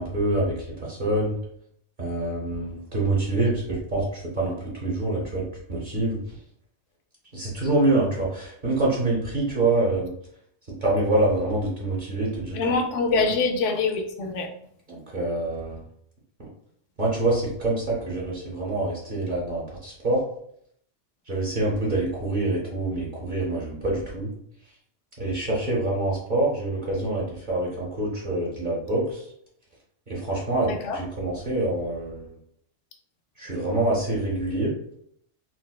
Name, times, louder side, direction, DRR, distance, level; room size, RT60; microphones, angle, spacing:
voice 1, 0.0-1.4 2.0-6.2 7.3-10.1 10.8-12.6 13.2-13.3 14.9-15.8 17.0-20.2 21.3-24.3 25.2-29.2 30.1-32.3 33.4-34.7, right 2 dB, 45° right, -4 dB, 1.0 m, -26 dB
voice 2, 12.5-14.5 30.6-31.0, left 4 dB, 85° left, 3 dB, 0.9 m, -24 dB
4.1 x 2.1 x 2.3 m, 0.68 s
omnidirectional pair, 1.2 m